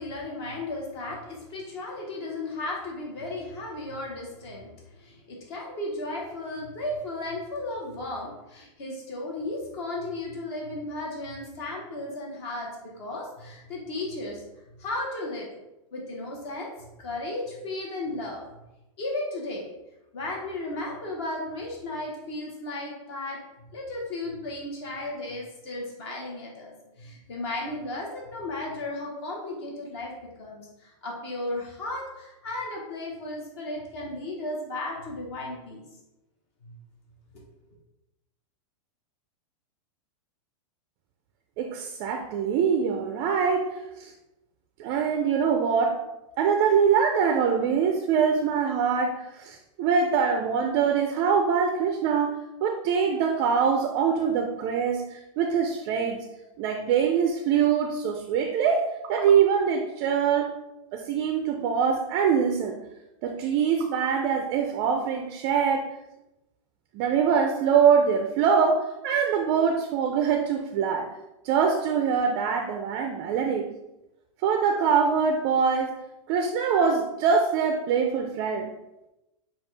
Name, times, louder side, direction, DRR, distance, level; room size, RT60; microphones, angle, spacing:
voice 1, 0.0-4.7 5.0-12.7 13.0-14.4 14.8-15.5 15.9-16.7 17.0-18.4 19.0-19.7 20.1-23.4 23.7-30.1 30.4-35.8 36.6-36.7, left 2 dB, 50° left, -2 dB, 1.1 m, -35 dB
voice 2, 41.6-44.1 44.8-46.0 46.4-56.3 56.6-60.5 60.9-62.8 63.2-65.9 66.9-71.1 71.4-73.7 74.4-75.9 76.3-78.7, right 6 dB, 30° right, 4 dB, 0.3 m, -24 dB
6.9 x 2.4 x 3.2 m, 0.96 s
supercardioid pair, 160°, 17 cm